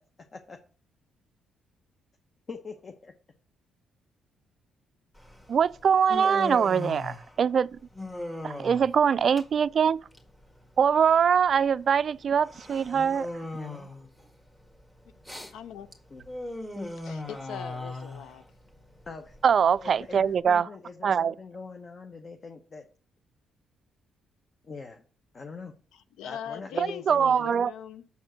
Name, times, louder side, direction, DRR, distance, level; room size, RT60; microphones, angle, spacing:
voice 1, 2.5-3.1 13.6-13.9 16.1-16.2 16.7-16.9 19.1-19.4 19.8-22.9 24.6-25.0 25.3-25.7 26.2-27.7, left 4 dB, 40° left, 0.9 m, -43 dB
Human voice, 5.1-20.4, left 2 dB, 15° left, 1.9 m, -39 dB
voice 2, 5.5-7.8 8.4-10.0 10.8-13.3 19.4-20.6 21.0-21.3 26.8-27.7, right 7 dB, 50° right, 0.3 m, -23 dB
voice 3, 15.5-15.9 17.0-18.4 25.9-28.1, left 9 dB, 90° left, 0.6 m, -41 dB
7.0 x 4.4 x 6.1 m
cardioid pair, 90°, 0 cm